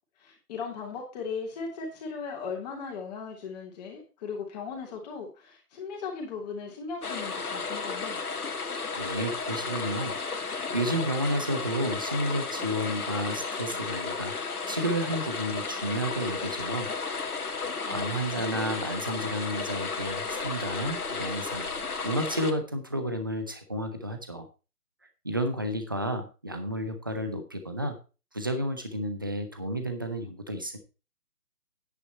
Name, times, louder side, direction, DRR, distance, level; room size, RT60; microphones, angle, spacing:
voice 1, 0.2-8.2 17.8-18.7, left 5 dB, 25° left, -1 dB, 3.2 m, -38 dB
sound 1, 7.0-22.5, left 4 dB, 70° left, 2.2 m, -33 dB
voice 2, 8.9-14.3 14.7-16.9 17.9-21.7 22.0-24.5 25.2-27.9 28.3-30.8, right 1 dB, 15° right, 7 dB, 0.6 m, -31 dB
9.9 x 8.5 x 4.3 m, 0.32 s
figure-of-eight pair, 150°, 47 cm